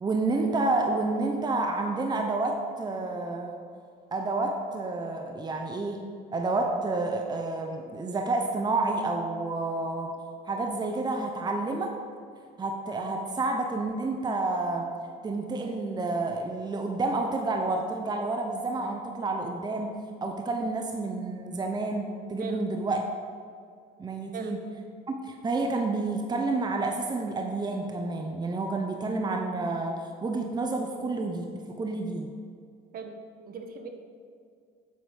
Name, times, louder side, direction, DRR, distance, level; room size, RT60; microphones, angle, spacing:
voice 1, 0.0-3.6 4.1-6.1 6.3-10.2 10.4-11.9 12.6-14.9 15.2-19.9 20.2-23.1 24.0-24.6 25.1-32.3, right 3 dB, 25° right, 3 dB, 1.0 m, -29 dB
voice 2, 33.4-33.9, right 5 dB, 55° right, 5 dB, 1.5 m, -38 dB
8.3 x 8.0 x 6.3 m, 2.3 s
supercardioid pair, 90°, 18 cm